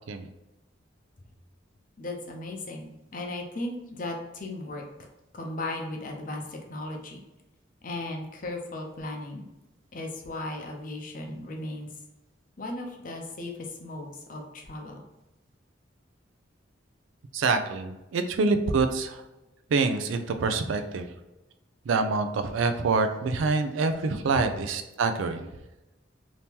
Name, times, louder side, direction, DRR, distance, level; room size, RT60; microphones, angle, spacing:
voice 1, 2.0-4.8 5.3-7.2 7.8-9.5 9.9-11.9 12.6-15.0, left 2 dB, 45° left, 2 dB, 0.6 m, -36 dB
voice 2, 17.3-19.2 19.7-21.1 21.9-25.5, right 4 dB, 85° right, 8 dB, 0.4 m, -26 dB
2.9 x 2.7 x 3.5 m, 0.99 s
head